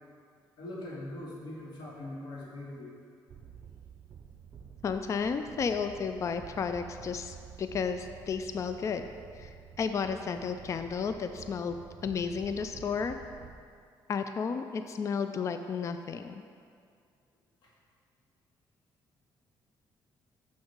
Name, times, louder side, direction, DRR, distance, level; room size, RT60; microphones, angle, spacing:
voice 1, 0.6-3.0 17.6-17.7, left 1 dB, 65° left, -5 dB, 2.0 m, -41 dB
sound 1, 3.3-13.6, right 7 dB, 55° right, 0.6 m, -50 dB
voice 2, 4.8-9.0 9.4-13.2 14.1-16.4, left 6 dB, 40° left, 8 dB, 0.3 m, -33 dB
6.6 x 6.5 x 4.5 m, 2.2 s
cardioid pair, 110°, 8 cm